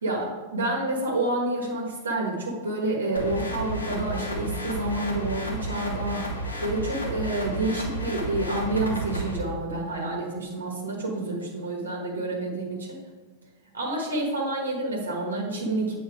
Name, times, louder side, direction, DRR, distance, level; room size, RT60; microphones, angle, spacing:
voice 1, 0.0-13.0 13.7-15.9, right 2 dB, 70° right, -2 dB, 1.3 m, -29 dB
sound 1, 3.2-9.4, right 1 dB, 80° left, 1.4 m, -32 dB
8.5 x 3.9 x 4.9 m, 1.3 s
figure-of-eight pair, 90°, 0 cm